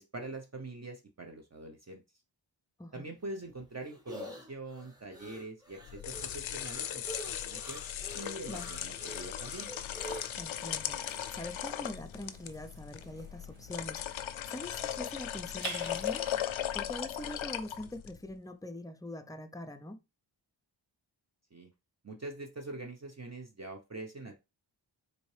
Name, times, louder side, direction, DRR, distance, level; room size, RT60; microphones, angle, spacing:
voice 1, 0.0-2.0 2.9-7.8 8.1-9.7 21.5-21.7 22.0-24.4, right 2 dB, 35° right, 0.8 m, -44 dB
sound 1, 3.2-11.4, equal, 10° right, 1.1 m, -47 dB
sound 2, 5.8-18.2, left 10 dB, 75° left, 0.5 m, -38 dB
sound 3, 9.6-17.4, right 5 dB, 85° right, 0.9 m, -50 dB
voice 2, 10.4-14.0 14.5-16.2 16.7-20.0, left 1 dB, 10° left, 0.5 m, -43 dB
4.1 x 2.7 x 3.2 m
cardioid pair, 50°, 48 cm